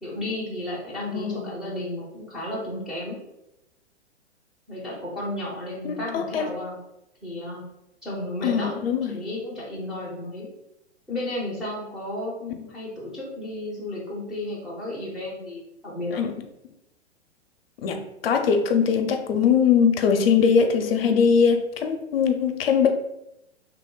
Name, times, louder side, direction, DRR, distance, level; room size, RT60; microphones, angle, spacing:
voice 1, 0.0-3.2 4.7-6.8 7.2-7.6 8.0-8.8 9.1-10.5 11.1-16.2, left 1 dB, 5° right, -7 dB, 0.4 m, -33 dB
voice 2, 1.1-1.5 5.8-6.5 8.4-9.2 16.1-16.3 17.8-22.9, left 6 dB, 55° left, 5 dB, 0.5 m, -21 dB
2.9 x 2.1 x 3.7 m, 0.88 s
figure-of-eight pair, 115°, 34 cm